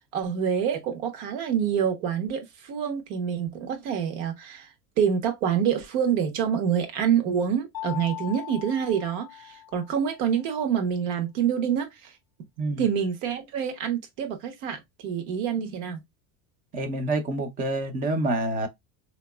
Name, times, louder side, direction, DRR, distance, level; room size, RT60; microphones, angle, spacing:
voice 1, 0.1-4.7 5.0-12.1 12.8-16.0, right 8 dB, 70° right, 1.2 m, -27 dB
Mallet percussion, 7.7-10.3, left 13 dB, 40° left, 0.4 m, -39 dB
voice 2, 16.7-18.7, right 2 dB, 20° right, 0.4 m, -27 dB
4.4 x 2.8 x 2.2 m
cardioid pair, 175°, 42 cm